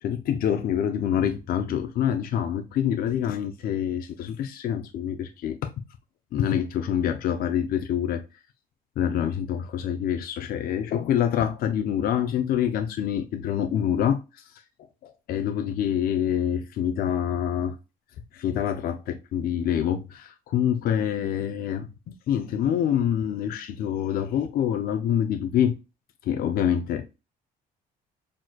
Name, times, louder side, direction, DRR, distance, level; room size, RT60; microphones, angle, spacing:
voice 1, 0.0-5.7 6.3-8.2 9.0-14.6 15.0-17.8 18.3-25.8 26.2-27.1, left 9 dB, 60° left, 0.6 m, -26 dB
6.2 x 3.0 x 2.3 m
cardioid pair, 110°, 17 cm